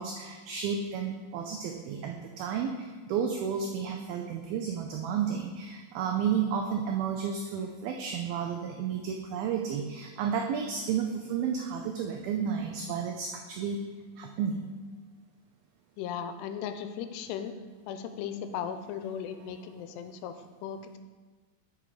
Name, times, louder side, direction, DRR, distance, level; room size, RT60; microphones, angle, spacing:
voice 1, 0.0-13.8 14.2-14.7, right 7 dB, 80° right, 3 dB, 2.3 m, -32 dB
voice 2, 16.0-17.5 17.9-21.0, left 8 dB, 90° left, 9 dB, 2.7 m, -37 dB
11.5 x 5.4 x 4.8 m, 1.4 s
omnidirectional pair, 4.8 m